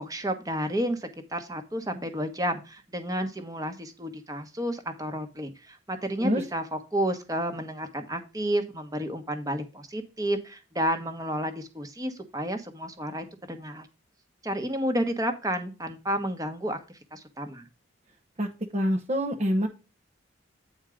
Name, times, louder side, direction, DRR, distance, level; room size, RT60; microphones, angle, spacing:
voice 1, 0.0-13.9 14.4-16.8 17.1-17.6, equal, 15° right, 7 dB, 1.1 m, -31 dB
voice 2, 18.4-19.7, equal, 30° right, 3 dB, 0.8 m, -26 dB
9.0 x 4.5 x 5.0 m, 0.30 s
head